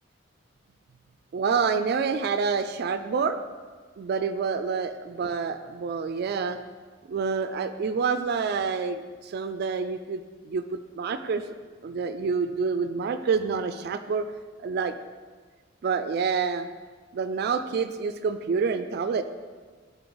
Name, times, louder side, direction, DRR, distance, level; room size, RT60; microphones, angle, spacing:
voice 1, 1.3-3.4 4.0-6.6 7.0-11.4 11.8-14.2 14.6-14.9 15.8-16.7 17.1-19.2, right 5 dB, 55° right, 10 dB, 0.3 m, -27 dB
10.5 x 4.2 x 3.8 m, 1.5 s
head